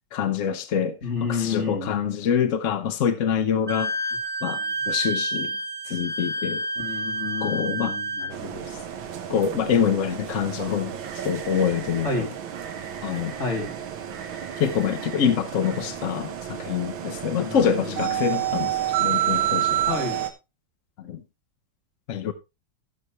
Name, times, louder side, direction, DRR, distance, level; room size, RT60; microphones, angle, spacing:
voice 1, 0.1-1.0 1.3-3.9 4.4-5.5 5.9-6.6 7.4-8.0 8.7-8.8 9.3-11.0 11.2-12.3 13.0-13.4 14.6-19.8 21.0-21.2 22.1-22.3, left 8 dB, 70° left, 0.7 m, -25 dB
voice 2, 1.0-1.9 6.8-8.7 12.0-12.3 13.4-13.7 15.8-15.9 17.4-18.1 19.9-20.2, left 4 dB, 30° left, 3.2 m, -30 dB
Wind instrument woodwind instrument, 3.7-8.3, right 1 dB, 5° right, 0.8 m, -29 dB
sound 1, 8.3-20.3, right 11 dB, 70° right, 1.8 m, -30 dB
16.0 x 6.7 x 3.0 m
omnidirectional pair, 2.3 m